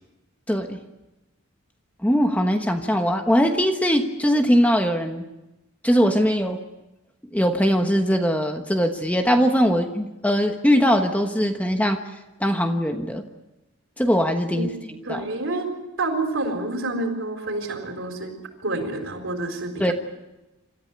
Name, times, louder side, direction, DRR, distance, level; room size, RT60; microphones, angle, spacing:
voice 1, 0.5-0.8 2.0-5.2 5.8-6.6 7.3-12.0 12.4-13.2 14.0-14.7 15.0-15.2 19.8-19.9, equal, 5° left, 5 dB, 1.2 m, -21 dB
voice 2, 15.0-15.7 16.0-18.3 18.6-19.9, right 2 dB, 65° right, 5 dB, 4.2 m, -28 dB
27.0 x 14.0 x 9.5 m, 1.0 s
head